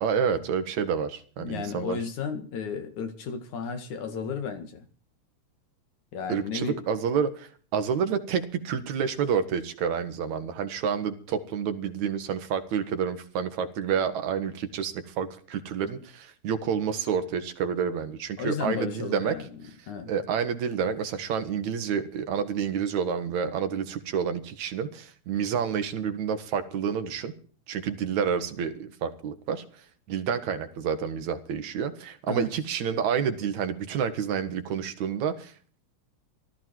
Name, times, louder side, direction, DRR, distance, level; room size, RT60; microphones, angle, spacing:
voice 1, 0.0-2.0 6.3-19.4 20.1-27.3 27.7-29.6 30.1-35.5, right 7 dB, 75° right, 2.8 m, -29 dB
voice 2, 1.4-4.8 6.1-6.8 18.4-19.5 19.9-20.1 32.3-32.5, left 6 dB, 90° left, 3.4 m, -33 dB
17.0 x 13.0 x 4.6 m
omnidirectional pair, 3.3 m